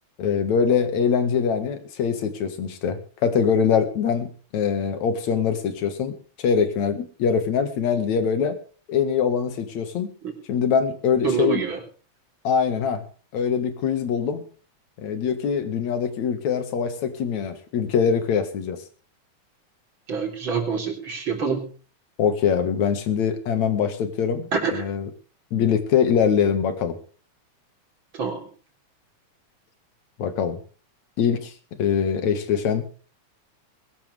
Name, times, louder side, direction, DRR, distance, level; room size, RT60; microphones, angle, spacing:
voice 1, 0.2-8.6 8.9-10.1 10.5-11.6 12.4-13.0 13.3-14.4 15.0-18.8 22.2-25.1 25.5-27.0 30.2-30.6 31.2-31.5 31.8-32.9, left 7 dB, 65° left, 9 dB, 3.0 m, -23 dB
voice 2, 11.2-11.8 20.1-21.7 24.5-24.8 28.1-28.5, right 5 dB, 40° right, 1 dB, 4.3 m, -26 dB
22.0 x 12.0 x 3.5 m, 0.39 s
omnidirectional pair, 3.5 m